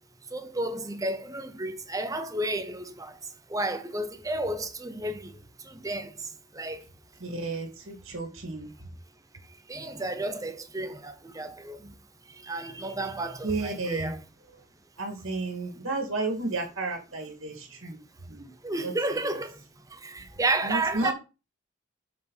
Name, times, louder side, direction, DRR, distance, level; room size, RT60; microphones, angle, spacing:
voice 1, 0.3-3.1 3.5-5.3 5.7-6.1 6.6-6.8 9.7-11.9 12.5-14.2 18.6-19.5 20.0-21.1, right 2 dB, 15° right, 0.8 m, -31 dB
voice 2, 7.2-8.7 13.4-14.2 15.0-18.0 18.3-18.5 18.8-19.4 20.6-21.1, right 2 dB, 65° right, 2.2 m, -32 dB
7.8 x 5.1 x 4.1 m
head